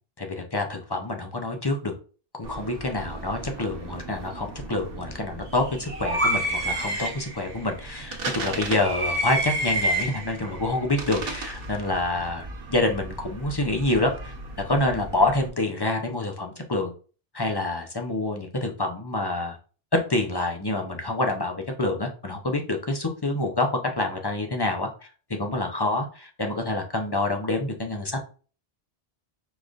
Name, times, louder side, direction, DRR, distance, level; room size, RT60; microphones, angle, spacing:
voice 1, 0.2-1.9 2.3-14.3 14.7-16.9 17.3-19.6 19.9-23.7 24.0-24.9 25.4-28.2, left 2 dB, 25° left, 3 dB, 0.6 m, -27 dB
sound 1, 2.4-15.5, right 1 dB, 60° right, 1.1 m, -32 dB
sound 2, 5.7-6.5, equal, 15° right, 0.6 m, -28 dB
5.0 x 3.8 x 2.5 m, 0.37 s
omnidirectional pair, 1.1 m